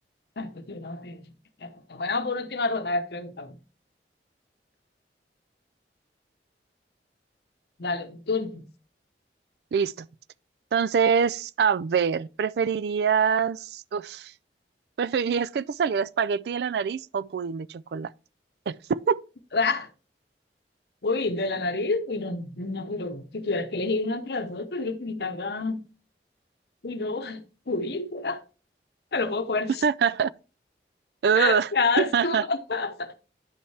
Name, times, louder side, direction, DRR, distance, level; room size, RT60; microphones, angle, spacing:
voice 1, 0.4-1.2 1.6-3.6 7.8-8.6 19.5-19.9 21.0-25.8 26.8-28.4 29.1-29.8 31.3-33.2, left 3 dB, 65° left, 0.8 m, -29 dB
voice 2, 9.7-10.1 10.7-14.3 15.0-18.1 18.7-19.2 29.8-30.3 31.2-31.7 32.0-32.4, right 6 dB, 65° right, 0.3 m, -24 dB
9.8 x 5.4 x 3.3 m
head